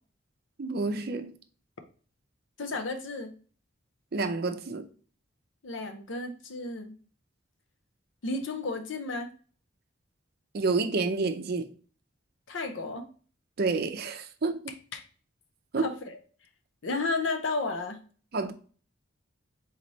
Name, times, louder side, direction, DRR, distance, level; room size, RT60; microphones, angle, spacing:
voice 1, 0.6-1.3 4.1-4.9 10.5-11.7 13.6-14.8 15.7-15.9 18.3-18.5, right 3 dB, 55° right, 0.5 m, -29 dB
voice 2, 2.6-3.3 5.6-7.0 8.2-9.3 12.5-13.1 14.9-15.0 15.8-16.2 16.8-18.0, left 3 dB, 75° left, 0.7 m, -32 dB
4.0 x 3.2 x 4.0 m
head